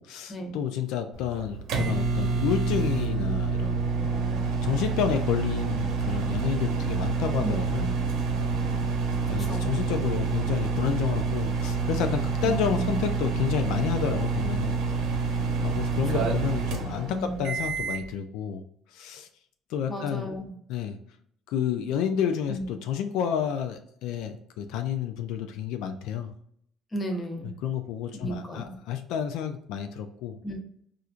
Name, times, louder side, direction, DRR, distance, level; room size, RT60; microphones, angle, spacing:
voice 1, 0.0-7.9 9.3-14.8 15.6-18.6 18.9-19.3 19.7-20.3 20.7-21.0 21.5-26.3 27.4-30.4, left 8 dB, 80° left, 7 dB, 0.3 m, -30 dB
sound 1, 1.1-18.1, right 5 dB, 70° right, 0.7 m, -27 dB
voice 2, 7.4-7.9 9.4-9.7 12.4-13.0 16.1-16.3 17.1-17.4 19.9-20.5 22.5-22.6 26.9-27.5 28.1-28.8 30.4-30.6, right 1 dB, 20° left, 1 dB, 0.8 m, -34 dB
4.2 x 2.4 x 2.4 m, 0.68 s
cardioid pair, 125°, 0 cm